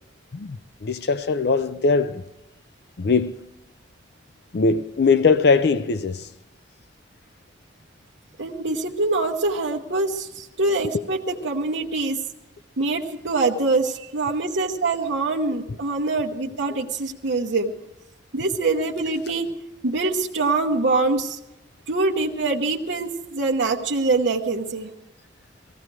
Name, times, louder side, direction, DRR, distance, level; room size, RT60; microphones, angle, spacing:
voice 1, 0.3-2.2 3.0-3.3 4.5-6.3, left 4 dB, 55° left, 0.5 m, -21 dB
voice 2, 8.4-12.2 12.8-17.7 18.3-19.5 19.8-21.4 21.9-24.9, right 3 dB, 75° right, 1.0 m, -24 dB
18.5 x 15.0 x 4.7 m
head